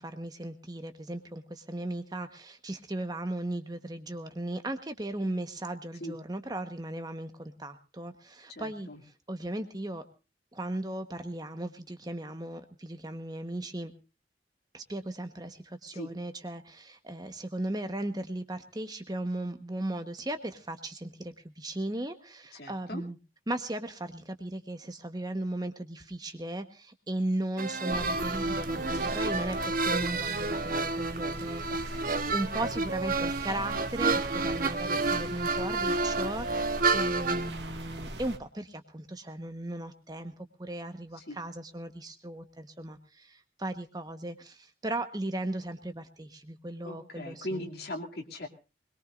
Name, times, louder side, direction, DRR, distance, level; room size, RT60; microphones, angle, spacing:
voice 1, 0.0-10.1 10.5-13.9 14.7-23.2 23.5-31.6 32.3-47.7, right 1 dB, 25° right, 8 dB, 1.1 m, -37 dB
voice 2, 8.5-9.0 15.9-16.1 22.5-23.0 27.8-28.0 31.7-32.2 41.1-41.4 46.8-48.5, left 1 dB, 65° left, 2 dB, 2.5 m, -40 dB
sound 1, 27.6-37.5, right 3 dB, 50° right, 1.1 m, -30 dB
sound 2, 27.9-38.4, right 2 dB, 80° right, 1.9 m, -41 dB
21.5 x 21.5 x 2.5 m, 0.31 s
head